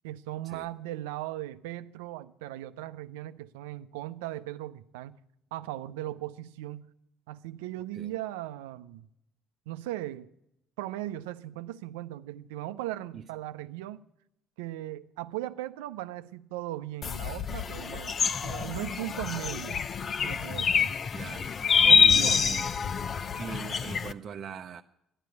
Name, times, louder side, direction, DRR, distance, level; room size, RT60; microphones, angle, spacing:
voice 1, 0.0-5.2 5.5-6.9 7.3-9.0 9.7-10.3 10.8-14.0 14.6-19.8 20.2-20.9 21.8-22.7, right 14 dB, 85° right, 0.6 m, -38 dB
sound 1, 17.0-24.1, left 6 dB, 45° left, 0.6 m, -26 dB
voice 2, 21.1-21.6 21.8-22.7 23.4-24.8, right 7 dB, 50° right, 0.7 m, -41 dB
13.5 x 10.0 x 9.5 m
hypercardioid pair, 60°, 0 cm